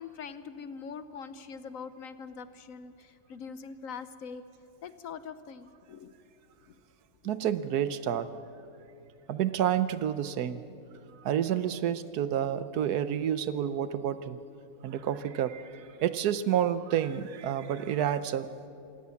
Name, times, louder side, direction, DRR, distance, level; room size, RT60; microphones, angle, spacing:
voice 1, 0.0-4.4 4.8-6.1 6.7-6.8, left 6 dB, 60° left, 12 dB, 1.1 m, -43 dB
voice 2, 7.2-8.3 9.3-10.6 11.2-14.4 14.8-18.5, right 10 dB, 75° right, 13 dB, 1.3 m, -29 dB
27.0 x 17.0 x 7.1 m, 2.7 s
omnidirectional pair, 1.7 m